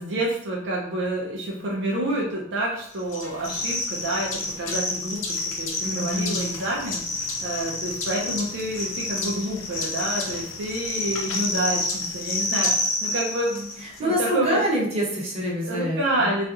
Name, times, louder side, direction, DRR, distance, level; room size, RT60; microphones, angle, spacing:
voice 1, 0.0-4.3 4.6-13.7 14.0-14.6 15.6-16.5, right 1 dB, 65° right, -3 dB, 0.5 m, -28 dB
sound 1, 3.1-14.0, left 2 dB, 85° left, 0.7 m, -29 dB
voice 2, 5.8-6.4 13.8-16.3, equal, 30° right, -5 dB, 1.0 m, -26 dB
4.0 x 2.4 x 2.4 m, 0.68 s
head